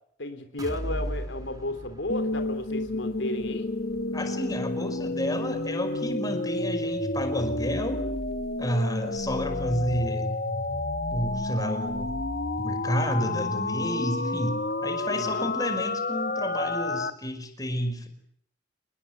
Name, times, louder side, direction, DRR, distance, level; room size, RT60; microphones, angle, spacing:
voice 1, 0.2-3.7 15.1-15.5, left 1 dB, 85° left, 8 dB, 3.6 m, -33 dB
sound 1, 0.6-8.4 8.8-8.9 9.3-9.4, equal, 20° right, 3.1 m, -41 dB
sound 2, 2.1-17.1, left 2 dB, 55° left, 1.9 m, -30 dB
voice 2, 4.1-8.1 8.6-10.4 11.1-12.2 12.6-18.1, equal, 20° left, 9 dB, 5.4 m, -30 dB
29.5 x 21.0 x 9.3 m, 0.68 s
head